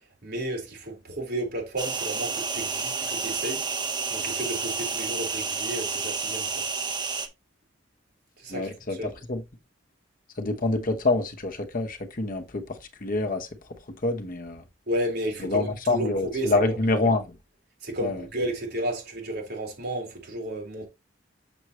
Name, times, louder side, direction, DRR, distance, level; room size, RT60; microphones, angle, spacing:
voice 1, 0.2-3.6 4.1-6.7 8.4-9.2 14.9-17.1 17.8-20.9, right 1 dB, 60° right, 3.7 m, -32 dB
sound 1, 1.8-7.3, right 5 dB, 25° right, 0.9 m, -30 dB
voice 2, 8.5-9.4 10.4-13.5 13.9-14.6 15.4-17.2 18.0-18.2, left 2 dB, 50° left, 1.0 m, -26 dB
7.1 x 6.2 x 3.0 m
head